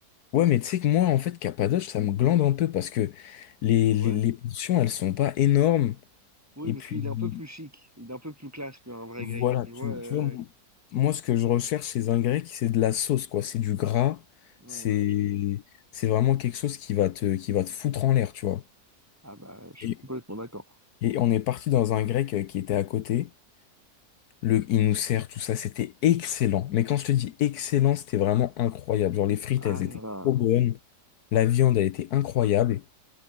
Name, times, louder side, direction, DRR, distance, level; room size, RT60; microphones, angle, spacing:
voice 1, 0.3-6.0 6.7-7.4 9.2-10.4 10.9-14.2 14.7-15.6 15.9-18.6 19.8-20.0 21.0-23.3 24.4-29.9 30.2-30.8 31.3-32.8, left 12 dB, 75° left, 1.3 m, -25 dB
voice 2, 6.6-10.4 14.6-15.1 19.2-20.6 29.6-30.3, equal, 10° right, 6.9 m, -39 dB
omnidirectional pair, 1.7 m